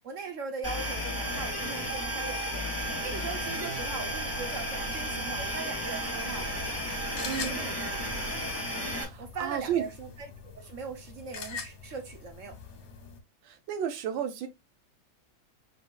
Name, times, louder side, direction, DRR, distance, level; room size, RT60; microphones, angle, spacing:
voice 1, 0.0-2.6 3.0-6.5 7.1-8.0 9.2-12.6, right 5 dB, 60° right, 0.8 m, -40 dB
sound 1, 0.6-9.0, equal, 10° right, 1.7 m, -33 dB
sound 2, 6.4-13.2, left 5 dB, 50° left, 1.0 m, -44 dB
voice 2, 7.2-7.6 8.9-9.8 13.4-14.5, right 9 dB, 85° right, 1.6 m, -33 dB
5.1 x 3.9 x 2.3 m
omnidirectional pair, 2.1 m